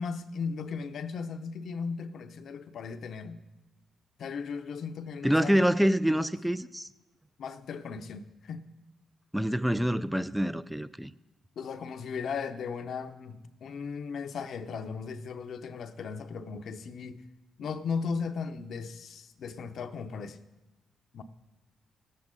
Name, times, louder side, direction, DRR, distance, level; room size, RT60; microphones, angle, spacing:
voice 1, 0.0-3.4 4.2-5.6 7.4-8.7 11.6-17.2 17.6-20.4 21.1-21.2, left 5 dB, 70° left, 0.7 m, -37 dB
voice 2, 5.2-6.9 9.3-11.1, equal, 5° right, 0.4 m, -26 dB
17.5 x 7.5 x 3.7 m
cardioid pair, 65°, 0 cm